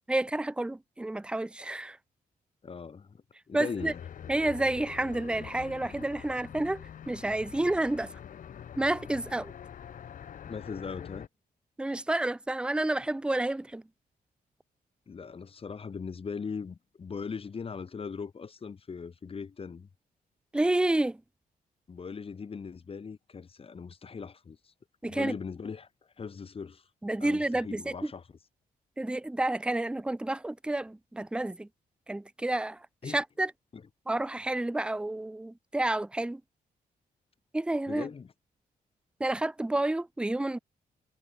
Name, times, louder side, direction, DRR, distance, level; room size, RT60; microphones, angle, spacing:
voice 1, 0.1-2.0 3.5-3.9 4.3-8.1 8.8-9.5 11.8-13.8 20.5-21.2 25.0-25.3 27.0-27.9 29.0-31.7 32.1-32.8 33.1-33.5 34.1-36.4 37.5-38.1 39.2-40.6, right 2 dB, 5° right, 0.6 m, -30 dB
voice 2, 2.6-3.2 3.5-4.0 10.5-11.3 15.1-19.9 21.9-24.7 25.0-25.9 26.2-26.9 27.2-28.2 33.0-33.2 33.7-33.8 37.9-38.3, left 5 dB, 35° left, 2.0 m, -39 dB
sound 1, 3.8-11.3, left 9 dB, 55° left, 1.1 m, -45 dB
cardioid pair, 125°, 16 cm